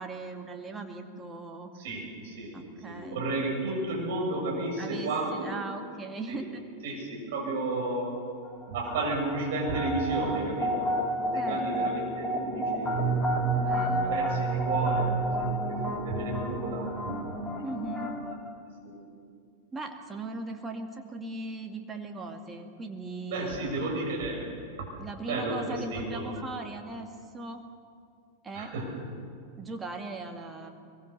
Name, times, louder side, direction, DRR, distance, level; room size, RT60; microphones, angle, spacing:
voice 1, 0.0-1.7 2.5-3.2 4.8-6.6 11.3-12.0 13.5-14.3 17.6-18.1 19.7-23.6 25.0-27.6 28.4-28.7 29.6-30.7, right 3 dB, 15° right, 3 dB, 2.3 m, -39 dB
voice 2, 1.7-2.6 2.8-5.6 6.3-6.4 6.8-8.2 8.7-13.3 14.1-17.2 18.6-19.0 23.3-24.5 25.2-26.3 28.5-28.9, right 2 dB, 55° right, -1 dB, 7.4 m, -33 dB
sound 1, 8.5-18.3, right 2 dB, 5° left, 2.5 m, -30 dB
23.0 x 22.0 x 6.9 m, 2.2 s
figure-of-eight pair, 90°, 0 cm